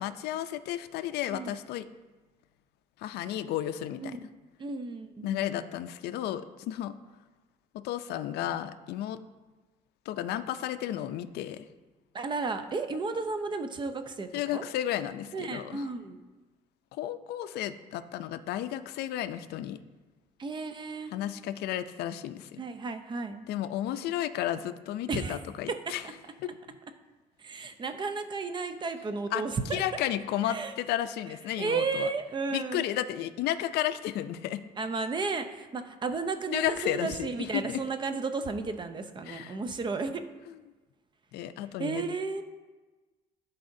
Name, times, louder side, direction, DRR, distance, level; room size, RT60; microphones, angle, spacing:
voice 1, 0.0-1.9 3.0-4.3 5.2-6.9 7.8-9.2 10.1-11.7 14.3-15.9 16.9-19.8 21.1-22.6 23.5-26.0 26.4-26.5 29.3-29.4 29.7-32.1 32.5-34.6 36.5-37.8 39.3-39.6 41.3-42.0, left 12 dB, 75° left, 11 dB, 0.4 m, -33 dB
voice 2, 4.6-5.4 12.1-14.6 15.3-16.2 20.4-21.1 22.6-23.4 25.1-25.4 25.7-26.1 27.4-29.8 30.5-30.7 31.6-32.8 34.8-40.2 41.8-42.4, right 4 dB, 30° right, 9 dB, 0.5 m, -33 dB
12.0 x 4.1 x 2.6 m, 1.3 s
cardioid pair, 110°, 17 cm